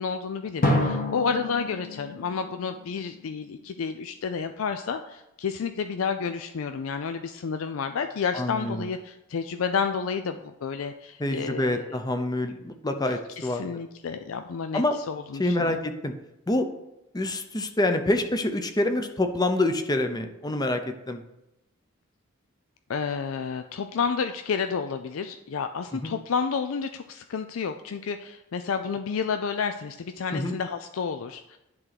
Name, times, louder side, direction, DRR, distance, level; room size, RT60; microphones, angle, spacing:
voice 1, 0.0-11.9 13.4-15.8 22.9-31.6, left 6 dB, 75° left, 8 dB, 0.4 m, -30 dB
Drum, 0.6-3.3, left 1 dB, 40° left, 1.4 m, -29 dB
voice 2, 8.3-8.9 11.2-13.7 14.7-14.9 15.4-16.1 16.5-16.7 17.1-21.2 26.0-26.2 30.3-30.5, left 1 dB, 20° left, 7 dB, 0.6 m, -26 dB
11.0 x 3.7 x 6.0 m, 0.89 s
head